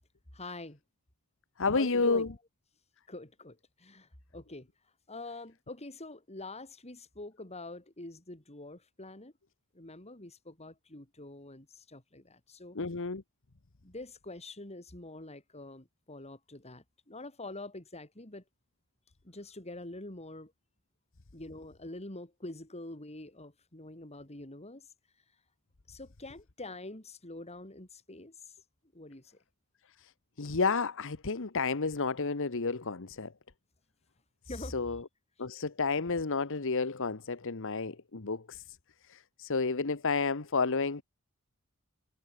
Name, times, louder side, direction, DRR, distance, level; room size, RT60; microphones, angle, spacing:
voice 1, 0.3-0.8 1.7-2.3 3.1-4.7 5.1-9.3 9.7-12.8 13.8-18.4 19.2-20.5 21.3-24.9 25.9-28.5 28.9-29.4 34.5-34.8, left 2 dB, 30° left, 4.4 m, -45 dB
voice 2, 1.6-2.3 12.7-13.2 30.4-33.3 34.7-35.0 35.4-38.6 39.1-41.0, left 4 dB, 60° left, 1.2 m, -31 dB
head